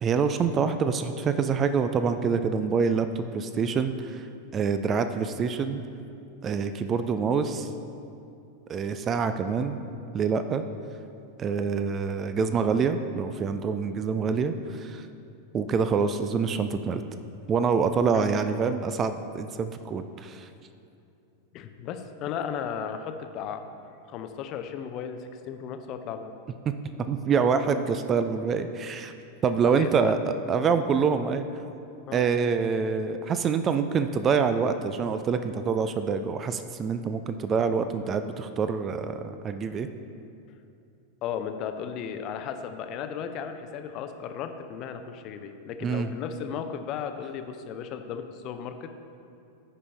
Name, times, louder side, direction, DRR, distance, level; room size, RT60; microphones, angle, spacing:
voice 1, 0.0-4.2 4.5-5.8 6.4-7.7 8.7-9.8 10.1-10.6 11.4-15.1 15.5-17.0 17.5-20.5 27.1-29.1 29.4-30.2 30.5-31.4 32.1-39.9 45.8-46.1, right 5 dB, 25° right, 10 dB, 0.4 m, -26 dB
voice 2, 21.5-26.3 29.6-30.1 32.1-32.2 41.2-48.9, left 7 dB, 40° left, 7 dB, 0.6 m, -35 dB
15.0 x 5.5 x 3.3 m, 2.6 s
figure-of-eight pair, 90°, 0 cm